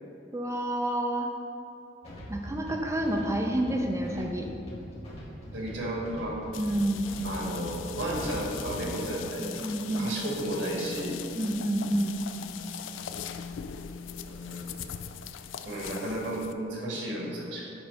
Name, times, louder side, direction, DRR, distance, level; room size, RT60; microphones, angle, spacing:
voice 1, 0.3-1.3 2.3-4.5 6.6-7.2 9.4-10.1 11.4-12.2, right 1 dB, 15° right, 2 dB, 0.5 m, -29 dB
sound 1, 2.0-8.8, equal, 35° left, 1.4 m, -42 dB
voice 2, 5.5-6.4 7.2-9.6 10.0-11.2 14.3-14.7 15.6-17.7, right 1 dB, 70° right, -3 dB, 1.7 m, -33 dB
sound 2, 6.5-16.5, left 7 dB, 85° left, 0.4 m, -40 dB
8.9 x 3.3 x 5.2 m, 2.8 s
head